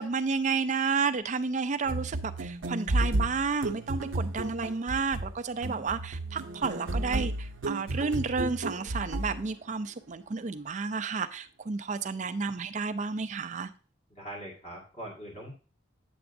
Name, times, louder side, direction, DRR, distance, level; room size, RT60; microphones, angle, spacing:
voice 1, 0.0-13.7, right 4 dB, 40° right, 0.4 m, -31 dB
sound 1, 1.9-9.5, right 1 dB, 85° right, 0.7 m, -32 dB
voice 2, 14.1-15.5, right 1 dB, 35° left, 1.9 m, -42 dB
8.6 x 6.9 x 2.6 m
head